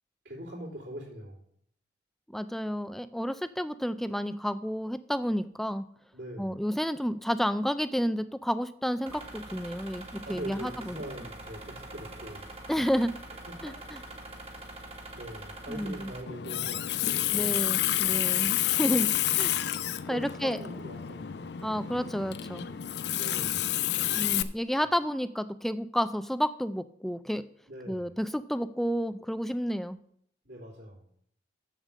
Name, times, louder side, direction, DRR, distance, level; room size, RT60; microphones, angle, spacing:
voice 1, 0.2-1.4 6.1-6.6 10.2-12.4 13.3-13.8 14.2-14.3 15.1-17.6 20.1-21.4 23.1-23.8 27.7-28.1 30.4-31.1, equal, 65° right, -9 dB, 3.4 m, -43 dB
voice 2, 2.3-5.9 6.4-11.0 12.7-13.1 13.6-14.0 15.7-16.1 17.3-19.1 19.4-19.5 20.1-20.6 21.6-22.7 24.1-27.4 27.9-30.0, equal, ahead, 13 dB, 0.3 m, -31 dB
sound 1, 9.1-16.2, right 2 dB, 30° right, 1.6 m, -44 dB
Water tap faucet, 16.3-24.4, left 12 dB, 65° left, 0.5 m, -29 dB
7.4 x 6.7 x 7.3 m, 0.66 s
head